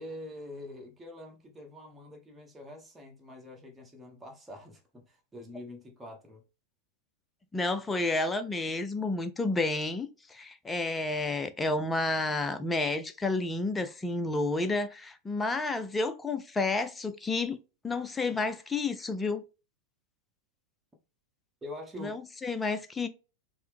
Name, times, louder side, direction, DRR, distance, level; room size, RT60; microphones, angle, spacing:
voice 1, 0.0-6.4 21.6-22.1, left 1 dB, 10° right, 1.0 m, -45 dB
voice 2, 7.5-17.6 17.8-19.4 22.0-23.1, left 3 dB, 10° left, 0.4 m, -30 dB
4.3 x 2.0 x 3.3 m
figure-of-eight pair, 90°, 0 cm